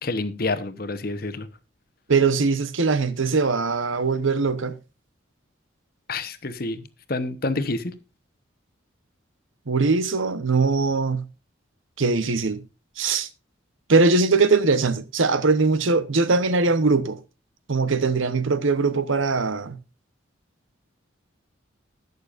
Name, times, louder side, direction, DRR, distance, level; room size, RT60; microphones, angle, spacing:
voice 1, 0.0-1.5 6.1-7.9, left 2 dB, 50° left, 1.0 m, -28 dB
voice 2, 2.1-4.7 9.7-11.2 12.0-12.6 13.0-13.3 13.9-17.2 17.7-19.8, right 4 dB, 75° right, 0.9 m, -21 dB
20.0 x 6.7 x 2.5 m
head